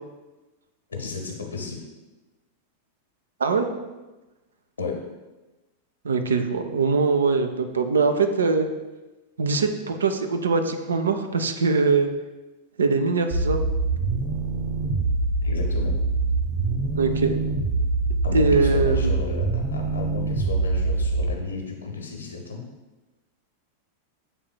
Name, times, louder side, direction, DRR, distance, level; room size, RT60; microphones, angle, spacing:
voice 1, 0.9-1.8 4.8-5.0 15.4-16.0 18.2-22.7, left 4 dB, 70° left, 1 dB, 0.8 m, -33 dB
voice 2, 6.0-8.7 9.4-12.1 12.8-13.6 17.0-17.4 18.3-19.2, right 4 dB, 70° right, 7 dB, 0.4 m, -22 dB
sound 1, 13.3-21.3, right 3 dB, 30° right, 0.8 m, -24 dB
7.0 x 3.3 x 2.2 m, 1.1 s
figure-of-eight pair, 90°, 0 cm